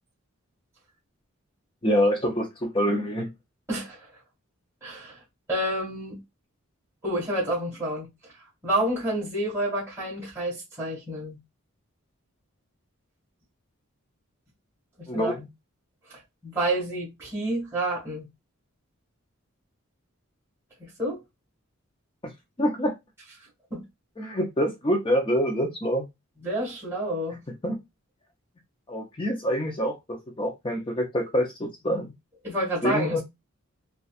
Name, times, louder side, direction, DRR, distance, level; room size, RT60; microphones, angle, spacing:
voice 1, 1.8-3.3 15.1-15.4 22.6-22.9 24.2-26.1 27.6-27.8 28.9-32.1 32.8-33.2, equal, 25° left, 0.6 m, -26 dB
voice 2, 3.7-4.0 4.8-5.2 5.5-6.2 7.0-8.1 8.6-11.4 15.1-15.3 16.4-18.3 21.0-21.2 23.7-23.8 26.4-27.4 32.4-33.2, right 1 dB, 10° right, 1.9 m, -29 dB
4.1 x 2.4 x 2.4 m
head